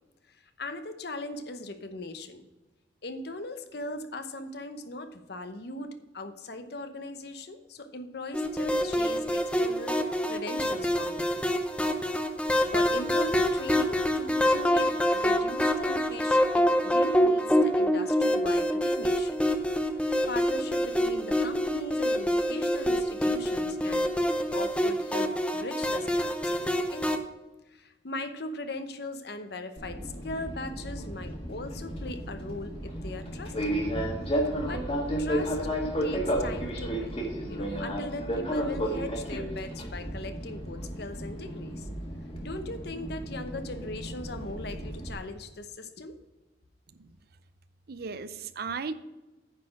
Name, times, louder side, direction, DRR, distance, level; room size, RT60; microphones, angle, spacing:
voice 1, 0.3-2.5 3.0-11.5 12.7-19.4 20.0-24.1 24.5-27.2 27.7-33.8 34.6-34.9 35.2-35.7 36.0-37.2 37.5-41.9 42.4-46.2, left 2 dB, 60° left, 9 dB, 0.9 m, -39 dB
sound 1, 8.3-27.2, equal, 5° left, 0.5 m, -26 dB
Fixed-wing aircraft airplane, 29.8-45.1, equal, 30° left, 1.6 m, -33 dB
voice 2, 47.9-48.9, right 5 dB, 55° right, 13 dB, 0.5 m, -36 dB
9.6 x 4.3 x 7.2 m, 1.1 s
head